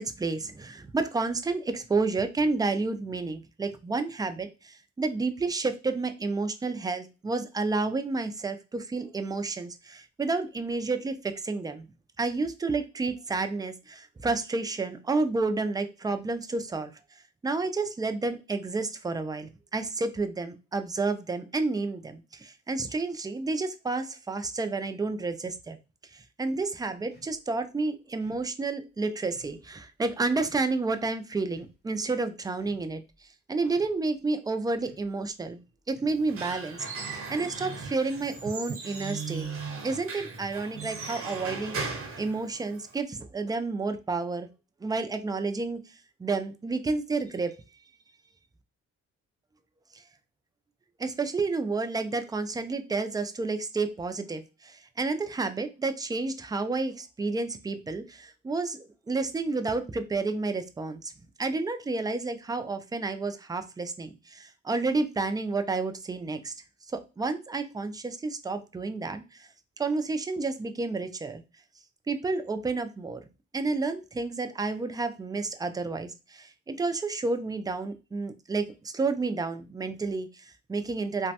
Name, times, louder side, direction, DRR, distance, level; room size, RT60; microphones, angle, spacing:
voice 1, 0.0-11.9 12.2-16.9 17.4-25.8 26.1-33.0 33.5-39.5 39.8-44.5 44.8-45.8 46.2-47.5 51.0-61.1 61.4-66.5 66.9-69.5 69.8-71.4 72.1-73.3 73.5-81.3, right 3 dB, 15° right, 9 dB, 0.3 m, -30 dB
sound 1, 27.1-27.4 28.2-28.5 29.3-29.6 30.4-30.7 31.5-31.8 32.6-33.1 33.7-34.0 34.7-35.1 35.9-36.3 37.0-37.4 38.1-38.4 39.2-39.7, equal, 35° left, 1.2 m, -55 dB
Squeak / Wood, 36.1-43.0, right 4 dB, 45° right, 1.0 m, -37 dB
3.0 x 2.1 x 2.8 m, 0.29 s
cardioid pair, 90°, 30 cm